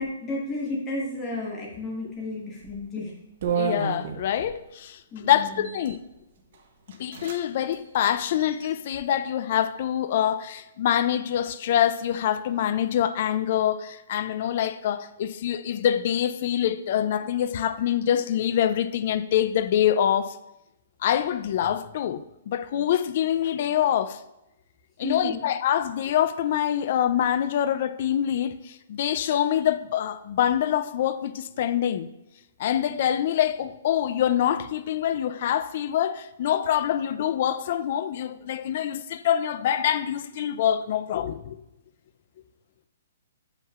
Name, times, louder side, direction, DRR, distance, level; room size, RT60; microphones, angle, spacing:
voice 1, 0.0-3.1 5.1-5.7 25.0-25.5, left 2 dB, 15° left, 1.2 m, -32 dB
sound 1, 2.6-2.8 3.4-4.5 5.5-6.0 6.5-6.6 6.9-7.4 7.6-7.8 8.3-9.0, right 6 dB, 50° right, 0.8 m, -31 dB
voice 2, 3.5-6.0 7.0-20.4 21.0-24.2 25.0-32.1 32.6-41.6, left 10 dB, 40° left, 0.3 m, -25 dB
7.2 x 5.6 x 2.4 m
hypercardioid pair, 170°, 0 cm